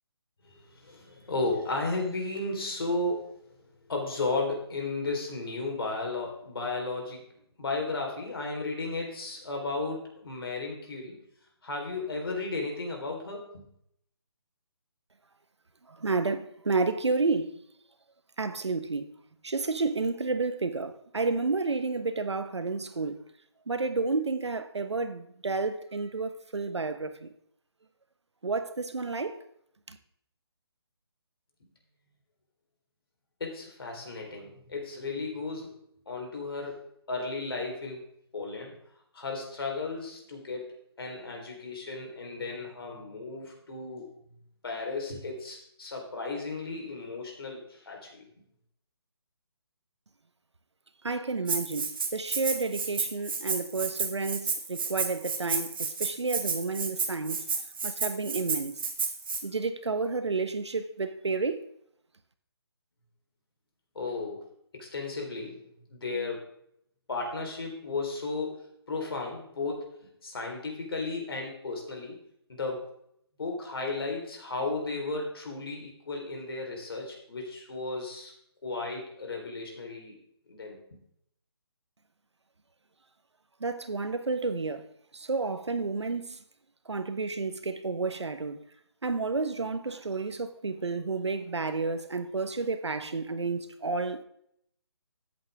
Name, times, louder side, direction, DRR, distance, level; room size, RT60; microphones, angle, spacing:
voice 1, 0.4-7.3 7.6-11.2 11.6-13.7 33.4-35.8 36.1-38.0 38.3-38.8 39.1-44.1 44.6-48.2 63.9-64.4 64.7-65.6 65.9-66.5 67.1-70.0 70.2-72.2 72.5-72.8 73.4-78.3 78.6-80.2 80.5-80.8, left 3 dB, 60° left, 3.9 m, -34 dB
voice 2, 16.0-17.6 18.4-19.1 19.4-23.2 23.7-27.3 28.4-29.4 29.9-30.0 51.0-57.4 57.8-58.8 59.4-61.7 83.6-84.8 85.1-86.4 86.9-88.6 89.0-94.2, right 3 dB, 90° right, 1.1 m, -31 dB
Rattle (instrument), 51.5-59.4, right 5 dB, 55° right, 1.7 m, -31 dB
13.0 x 8.5 x 3.5 m
hypercardioid pair, 165°, 14 cm